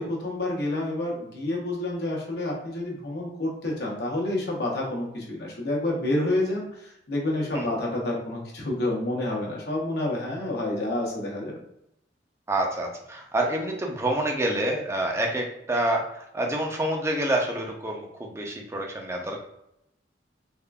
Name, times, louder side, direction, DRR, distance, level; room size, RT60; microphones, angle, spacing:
voice 1, 0.0-11.6, left 1 dB, 65° left, -1 dB, 0.9 m, -29 dB
voice 2, 12.5-19.4, right 1 dB, 15° right, 1 dB, 0.5 m, -27 dB
3.5 x 2.4 x 2.2 m, 0.79 s
head